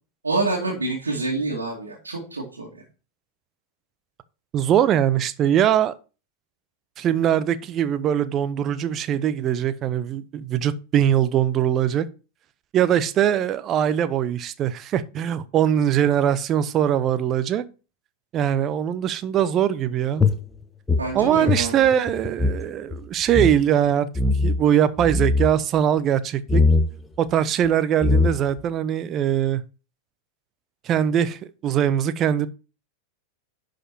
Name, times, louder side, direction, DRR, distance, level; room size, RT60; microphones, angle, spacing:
voice 1, 0.2-2.8 21.0-21.9, right 3 dB, 75° right, 2.5 m, -27 dB
voice 2, 4.5-5.9 7.0-12.1 12.7-17.6 18.3-20.2 21.1-24.1 24.4-26.6 27.2-29.6 30.8-32.5, right 10 dB, 30° right, 0.7 m, -21 dB
sound 1, 20.2-22.6 22.9-23.0 23.3-23.6 24.1-24.6 25.0-25.5 26.5-26.9 27.6-27.7 28.0-28.6, left 3 dB, 10° left, 0.9 m, -20 dB
11.0 x 5.2 x 4.5 m
figure-of-eight pair, 90°, 0 cm